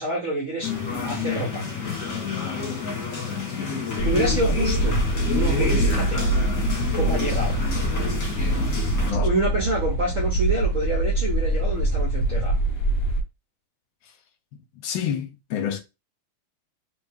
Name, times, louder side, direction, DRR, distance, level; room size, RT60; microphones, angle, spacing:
voice 1, 0.0-1.7 4.0-5.0 5.3-6.3 6.9-7.6 9.2-12.5, right 1 dB, 65° right, 0.8 m, -27 dB
sound 1, 0.6-9.1, left 5 dB, 45° left, 1.3 m, -29 dB
voice 2, 3.6-4.0 9.0-9.3 14.8-15.8, left 8 dB, 70° left, 1.3 m, -29 dB
sound 2, 4.0-13.2, right 2 dB, 90° left, 0.7 m, -24 dB
3.3 x 2.5 x 3.4 m
omnidirectional pair, 2.4 m